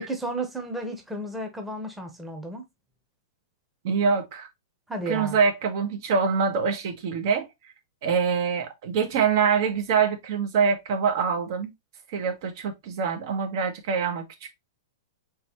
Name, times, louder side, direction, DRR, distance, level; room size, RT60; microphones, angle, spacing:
voice 1, 0.0-2.6 4.9-5.4, right 1 dB, 5° right, 0.9 m, -33 dB
voice 2, 3.8-4.5 5.1-7.5 8.0-11.7 12.1-14.2, right 6 dB, 60° right, 1.1 m, -24 dB
3.9 x 3.2 x 2.9 m
hypercardioid pair, 125°, 2 cm